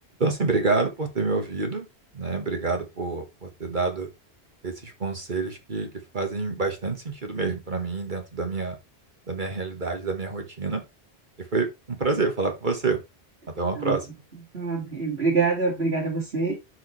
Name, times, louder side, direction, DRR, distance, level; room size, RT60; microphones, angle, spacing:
voice 1, 0.2-1.9 2.1-4.1 4.6-5.9 6.1-8.8 9.3-10.8 11.5-13.0 13.6-14.1, right 3 dB, 45° right, 1.8 m, -27 dB
voice 2, 14.5-16.5, right 4 dB, 65° right, 2.5 m, -25 dB
10.5 x 4.9 x 3.3 m
omnidirectional pair, 1.1 m